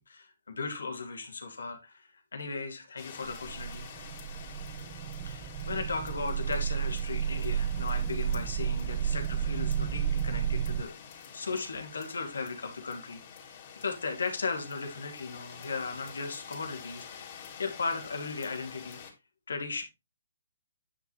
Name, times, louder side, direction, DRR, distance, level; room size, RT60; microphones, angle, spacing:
voice 1, 0.1-3.9 5.2-19.0 19.5-19.8, left 4 dB, 75° left, 5 dB, 2.3 m, -37 dB
sound 1, 3.0-19.1, left 7 dB, 40° left, 3.3 m, -48 dB
sound 2, 3.3-10.8, right 9 dB, 25° right, 0.6 m, -32 dB
9.5 x 6.1 x 3.1 m, 0.23 s
hypercardioid pair, 140°, 0 cm